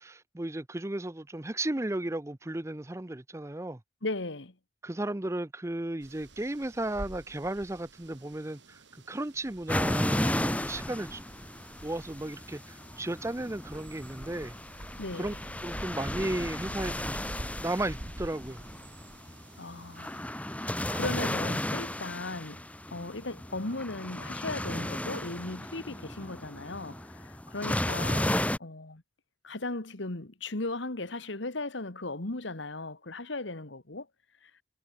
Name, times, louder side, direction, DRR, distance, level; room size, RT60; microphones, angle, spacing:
voice 1, 0.0-3.8 4.8-11.2 11.8-14.5 15.1-15.3 15.6-17.2 17.6-18.6, right 1 dB, 15° right, 0.5 m, -34 dB
voice 2, 4.0-4.5 15.0-15.4 19.6-22.6 22.9-29.0 29.4-34.1 34.4-34.5, left 2 dB, 65° left, 1.7 m, -37 dB
sound 1, 6.0-20.2, right 1 dB, 60° right, 3.3 m, -47 dB
sound 2, 9.7-28.6, left 1 dB, 5° left, 2.4 m, -34 dB
head